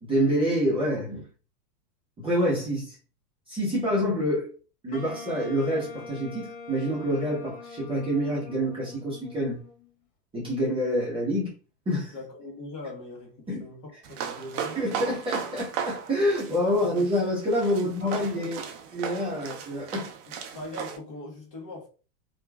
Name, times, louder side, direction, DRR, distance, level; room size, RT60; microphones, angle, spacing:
voice 1, 0.0-1.3 2.2-2.9 3.5-4.5 4.8-9.6 10.3-11.5 11.9-12.1 13.5-13.7 14.7-18.6 18.9-20.1, equal, 10° right, 0.8 m, -27 dB
Wind instrument woodwind instrument, 4.9-9.9, left 4 dB, 65° left, 1.2 m, -43 dB
voice 2, 12.1-14.8 16.8-16.9 18.0-18.1 18.4-18.5 20.5-21.9, left 2 dB, 40° left, 1.1 m, -41 dB
sound 1, 14.0-21.0, right 7 dB, 40° right, 0.5 m, -36 dB
2.9 x 2.4 x 2.2 m
supercardioid pair, 135°, 48 cm